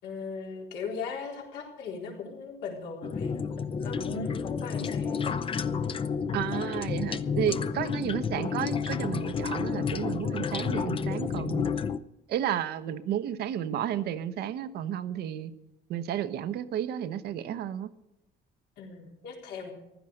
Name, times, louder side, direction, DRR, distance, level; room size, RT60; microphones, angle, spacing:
voice 1, 0.0-3.3 3.8-5.2 18.8-19.7, left 5 dB, 85° left, 0 dB, 3.8 m, -38 dB
sound 1, 3.0-12.0, left 6 dB, 30° left, 0.7 m, -31 dB
voice 2, 6.3-11.6 12.3-15.5 15.9-17.9, right 10 dB, 70° right, 13 dB, 1.0 m, -32 dB
15.5 x 11.5 x 6.5 m, 0.91 s
cardioid pair, 110°, 17 cm